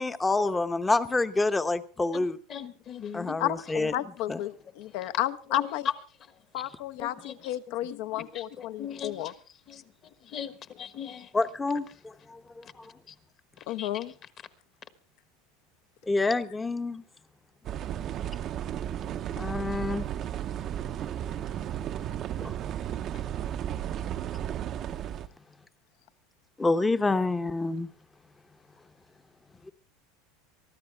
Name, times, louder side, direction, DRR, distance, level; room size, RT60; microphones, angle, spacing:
voice 1, 0.0-2.4 3.1-3.9 4.3-4.4 11.3-12.8 16.1-17.0 19.4-20.1 22.4-22.5 26.6-27.9, left 3 dB, 10° left, 0.8 m, -27 dB
voice 2, 2.1-3.4 5.5-5.9 7.0-7.6 7.9-9.3 9.7-11.3 13.1-13.2 13.6-14.0, left 8 dB, 35° left, 1.3 m, -39 dB
voice 3, 3.4-5.9 6.5-9.3 13.7-14.1, left 14 dB, 60° left, 0.9 m, -32 dB
sound 1, 17.6-25.3, right 10 dB, 35° right, 0.7 m, -34 dB
24.0 x 13.0 x 3.4 m
supercardioid pair, 145°, 0 cm